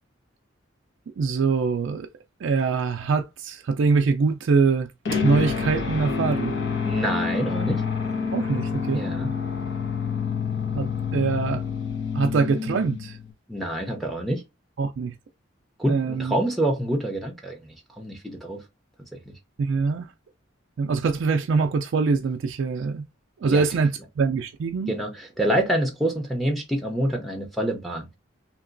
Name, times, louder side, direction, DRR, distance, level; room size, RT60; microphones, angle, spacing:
voice 1, 1.2-2.1 2.4-6.6 8.3-9.0 10.8-11.6 12.1-13.2 14.8-15.2 15.9-16.3 19.6-20.1 20.8-23.1 23.4-24.9, right 4 dB, 70° right, 0.3 m, -24 dB
sound 1, 5.1-13.3, left 5 dB, 60° left, 1.1 m, -28 dB
voice 2, 6.8-7.8 8.9-9.3 13.5-14.4 15.8-18.6 19.3-19.4 23.4-23.6 24.9-28.1, right 1 dB, ahead, 0.7 m, -27 dB
2.9 x 2.9 x 2.5 m
head